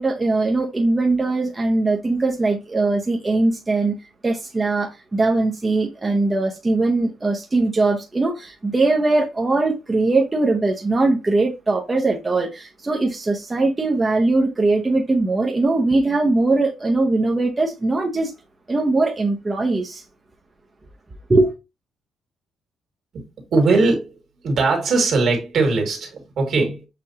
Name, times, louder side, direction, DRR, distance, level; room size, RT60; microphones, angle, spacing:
voice 1, 0.0-4.0 4.2-18.3 18.7-20.0 21.3-21.5, right 2 dB, 25° right, 0.8 m, -20 dB
voice 2, 23.5-24.2 24.4-26.9, right 3 dB, 65° right, 2.0 m, -20 dB
6.7 x 2.6 x 2.8 m
cardioid pair, 90°, 0 cm